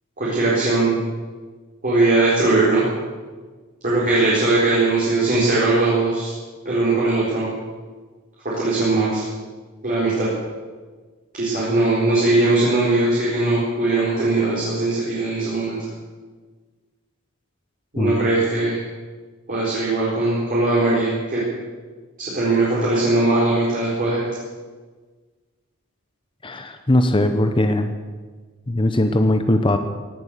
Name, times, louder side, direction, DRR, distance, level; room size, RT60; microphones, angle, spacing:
voice 1, 0.2-0.9 1.8-2.8 3.8-6.3 6.6-7.5 8.4-9.2 9.8-10.3 11.3-15.8 17.9-18.8 19.5-21.4 22.2-24.3, right 2 dB, 40° right, -7 dB, 4.4 m, -20 dB
voice 2, 26.4-27.9 28.7-29.8, left 1 dB, 25° left, 7 dB, 0.8 m, -19 dB
17.5 x 11.0 x 6.7 m, 1.4 s
head